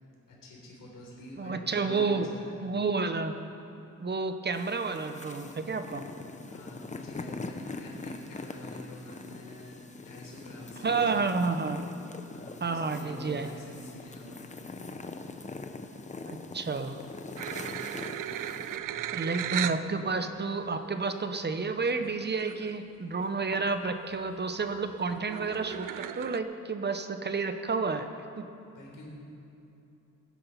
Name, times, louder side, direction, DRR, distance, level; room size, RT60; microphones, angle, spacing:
voice 1, 0.3-2.8 6.4-11.2 12.3-14.8 18.8-19.4 28.7-29.1, left 1 dB, 85° left, -2 dB, 3.9 m, -47 dB
voice 2, 1.4-2.3 2.6-3.3 4.0-6.0 10.8-11.8 12.6-13.5 16.3-17.0 19.1-28.1 28.4-28.5, right 4 dB, 35° right, 8 dB, 0.7 m, -30 dB
sound 1, 4.5-18.8, left 3 dB, 25° left, 0.8 m, -43 dB
sound 2, 17.4-19.9 20.6-20.7 22.1-22.2 22.4-22.8 23.2-23.7 24.1-26.4, right 11 dB, 80° right, 0.5 m, -36 dB
17.5 x 10.0 x 5.5 m, 2.8 s
wide cardioid pair, 120°, 32 cm